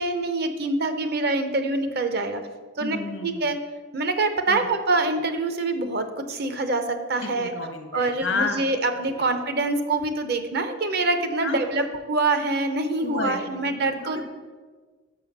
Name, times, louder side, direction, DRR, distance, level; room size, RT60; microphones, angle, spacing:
voice 1, 0.0-2.4 2.8-3.0 3.2-3.6 3.9-7.5 7.9-14.2, right 2 dB, 55° right, 8 dB, 0.7 m, -25 dB
voice 2, 2.8-3.4 4.5-4.7 7.2-8.7 11.4-11.9 13.0-14.3, left 3 dB, 90° left, 6 dB, 1.0 m, -32 dB
5.7 x 5.6 x 6.5 m, 1.4 s
head